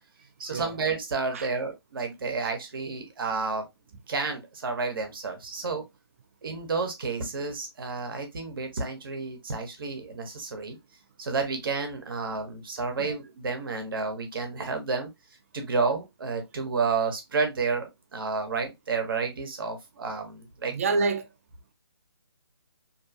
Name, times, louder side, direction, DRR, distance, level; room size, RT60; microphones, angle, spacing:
voice 1, 0.4-3.7 4.1-5.8 6.4-10.8 11.2-15.1 15.5-20.7, right 4 dB, 55° right, 0.9 m, -30 dB
voice 2, 20.7-21.3, right 3 dB, 35° right, 0.4 m, -28 dB
2.7 x 2.3 x 2.6 m
figure-of-eight pair, 150°, 14 cm